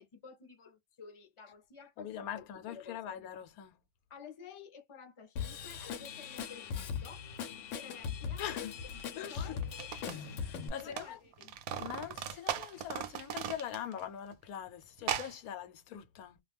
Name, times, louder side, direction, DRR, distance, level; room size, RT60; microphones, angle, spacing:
voice 1, 0.0-3.2 4.1-7.2 7.7-8.7 9.3-9.9 10.7-11.6, left 6 dB, 30° left, 0.5 m, -52 dB
voice 2, 2.0-3.8 8.4-8.7 9.2-9.6 10.1-11.2 11.8-16.4, left 9 dB, 85° left, 1.1 m, -42 dB
Drum kit / Drum, 5.4-10.7, left 7 dB, 65° left, 0.9 m, -40 dB
sound 1, 9.0-9.1 9.6-11.1 11.3-14.0 14.3-14.4 15.0-15.3, right 9 dB, 90° right, 1.1 m, -38 dB
2.4 x 2.2 x 3.3 m
omnidirectional pair, 1.5 m